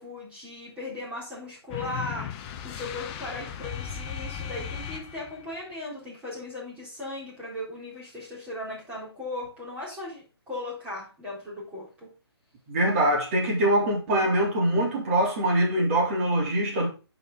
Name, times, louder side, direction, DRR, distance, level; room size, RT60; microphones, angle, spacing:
voice 1, 0.0-12.1, left 2 dB, 10° right, 4.0 m, -37 dB
sound 1, 1.7-5.6, left 8 dB, 20° left, 0.6 m, -36 dB
voice 2, 12.7-16.9, right 1 dB, 30° right, 3.4 m, -23 dB
9.6 x 5.1 x 4.0 m
hypercardioid pair, 155°, 14 cm